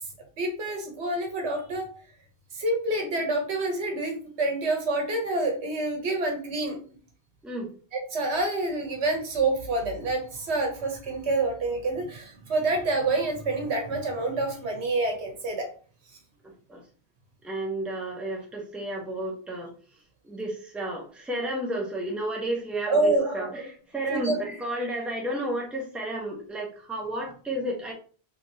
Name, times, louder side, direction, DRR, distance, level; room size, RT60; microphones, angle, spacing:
voice 1, 0.4-1.9 2.5-6.8 7.9-15.7 22.9-23.3 24.1-24.4, right 2 dB, 90° right, 3 dB, 1.2 m, -27 dB
voice 2, 16.4-16.8 17.4-19.7 20.2-27.9, right 1 dB, ahead, -2 dB, 0.7 m, -32 dB
3.3 x 2.9 x 2.7 m, 0.40 s
omnidirectional pair, 1.1 m